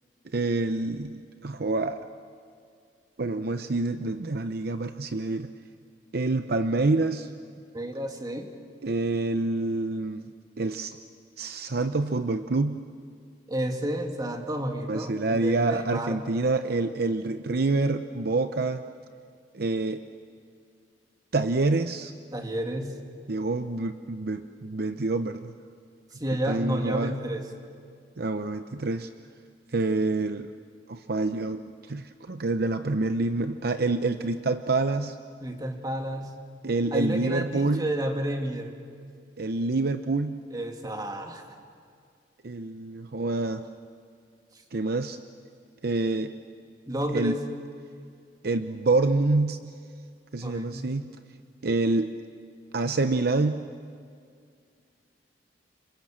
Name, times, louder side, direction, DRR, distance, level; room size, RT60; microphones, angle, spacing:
voice 1, 0.3-2.0 3.2-5.5 6.1-7.3 8.8-10.2 10.6-11.0 11.4-12.8 14.9-18.8 19.5-20.0 21.3-22.1 23.3-25.5 26.5-27.1 28.2-29.1 29.7-30.5 30.9-35.2 36.6-37.9 39.4-40.4 42.4-43.6 44.7-45.2 45.8-46.3 47.1-47.4 48.4-49.7 50.3-51.1 51.6-52.1 52.7-53.6, right 3 dB, 60° right, 9 dB, 0.7 m, -27 dB
voice 2, 7.7-8.5 13.5-16.3 22.3-23.0 26.2-27.4 35.4-36.4 36.9-38.7 40.5-41.4 46.9-47.4 50.4-50.9, right 1 dB, 20° right, 3 dB, 2.4 m, -31 dB
29.0 x 26.0 x 7.6 m, 2.3 s
head